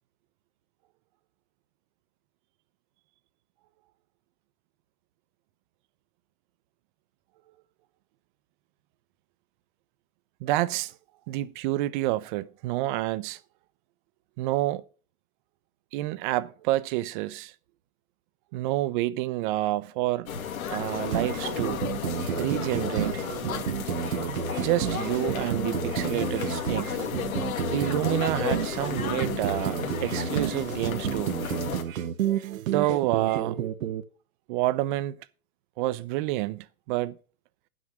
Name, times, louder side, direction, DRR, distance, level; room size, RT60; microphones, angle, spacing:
voice 1, 10.4-10.9 11.3-13.4 14.4-14.8 15.9-17.5 18.5-20.3 20.7-21.8 22.4-23.2 24.6-27.0 27.7-31.4 32.7-33.6 34.5-35.2 35.8-37.2, right 16 dB, 35° right, 0.6 m, -28 dB
sound 1, 20.3-31.8, left 8 dB, 75° left, 2.1 m, -33 dB
sound 2, 21.1-34.0, right 9 dB, 70° right, 1.0 m, -31 dB
11.0 x 6.2 x 6.4 m
hypercardioid pair, 120°, 42 cm